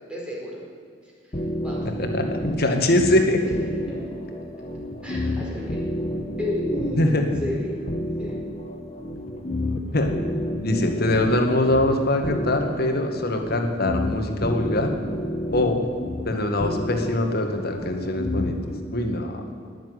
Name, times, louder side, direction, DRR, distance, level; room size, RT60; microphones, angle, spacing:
voice 1, 0.1-0.6 1.2-1.9 3.8-4.0 5.0-5.8 6.4-7.8 8.2-8.4, equal, 5° right, -5 dB, 4.7 m, -32 dB
sound 1, 1.3-18.8, left 1 dB, 35° left, 1.4 m, -30 dB
voice 2, 2.0-3.4 7.0-7.3 9.9-10.1 10.6-14.9 15.5-15.8 16.3-18.6 18.9-19.4, left 1 dB, 55° left, 4 dB, 1.9 m, -23 dB
19.5 x 7.5 x 9.7 m, 2.1 s
head